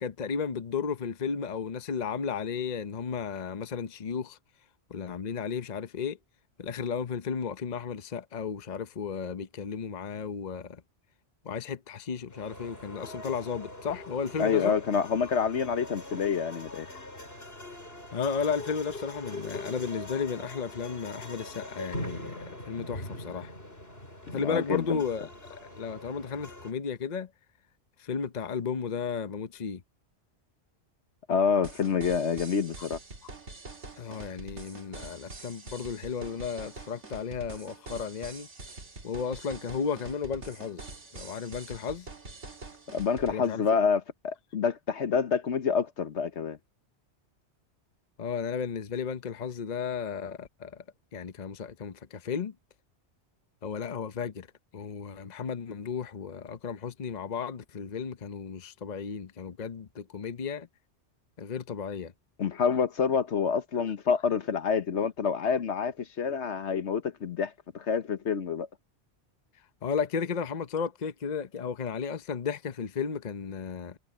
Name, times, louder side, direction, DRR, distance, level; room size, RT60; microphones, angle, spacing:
voice 1, 0.0-4.4 4.9-6.2 6.6-10.8 11.4-14.8 18.1-23.5 24.3-27.3 28.0-29.8 34.0-38.5 39.0-40.8 41.1-42.1 43.3-43.6 48.2-50.8 51.1-52.5 53.6-54.5 54.7-60.7 61.4-62.1 69.8-74.0, left 6 dB, 40° left, 0.9 m, -34 dB
sound 1, 12.3-26.7, left 1 dB, 60° left, 7.1 m, -42 dB
voice 2, 14.4-16.9 24.3-25.0 31.3-33.0 42.9-46.6 62.4-68.7, left 6 dB, 75° left, 1.4 m, -27 dB
sound 2, 31.6-43.4, right 3 dB, 85° right, 2.5 m, -45 dB
omnidirectional pair, 1.2 m